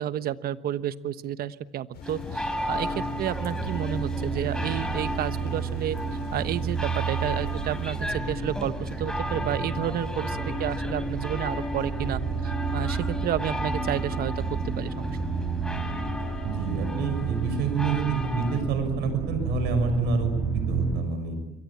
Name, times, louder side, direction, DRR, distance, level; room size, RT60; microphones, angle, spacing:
voice 1, 0.0-15.2, right 11 dB, 65° right, 13 dB, 1.2 m, -31 dB
sound 1, 1.9-8.2, left 5 dB, 70° left, 7.7 m, -43 dB
sound 2, 2.0-18.6, left 1 dB, 5° left, 5.3 m, -35 dB
sound 3, 2.4-21.0, right 5 dB, 20° right, 4.0 m, -31 dB
voice 2, 16.4-21.4, right 5 dB, 90° right, 8 dB, 6.3 m, -28 dB
27.0 x 23.0 x 8.7 m, 0.86 s
cardioid pair, 110°, 17 cm